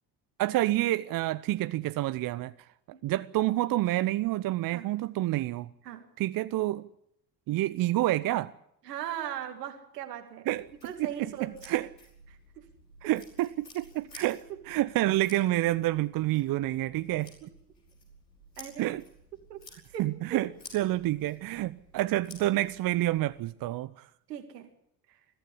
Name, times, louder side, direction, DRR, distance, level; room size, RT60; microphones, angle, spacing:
voice 1, 0.4-2.5 3.0-5.7 6.2-6.8 7.5-8.5 10.5-10.6 11.0-11.1 11.4-11.9 13.0-14.4 14.7-17.3 18.8-19.0 20.0-20.5 20.7-24.1, right 16 dB, 45° right, 0.8 m, -28 dB
voice 2, 8.8-11.7 12.3-12.7 17.4-17.5 18.6-18.9 19.5-19.6 19.9-20.5 24.3-24.7 25.1-25.2, right 10 dB, 75° right, 2.4 m, -39 dB
sound 1, 10.5-23.5, left 1 dB, 90° left, 5.4 m, -54 dB
21.5 x 15.0 x 9.9 m
figure-of-eight pair, 55°, 48 cm